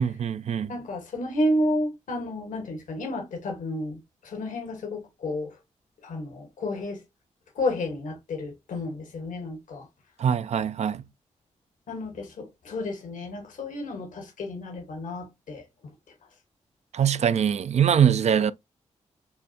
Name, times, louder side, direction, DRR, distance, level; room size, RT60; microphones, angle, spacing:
voice 1, 0.0-0.8 10.2-11.0 16.9-18.5, right 8 dB, 60° right, 0.4 m, -23 dB
voice 2, 0.7-5.6 6.0-7.0 7.5-9.9 11.9-15.6, left 1 dB, 80° left, 1.2 m, -31 dB
5.5 x 2.0 x 2.7 m
supercardioid pair, 45°, 13 cm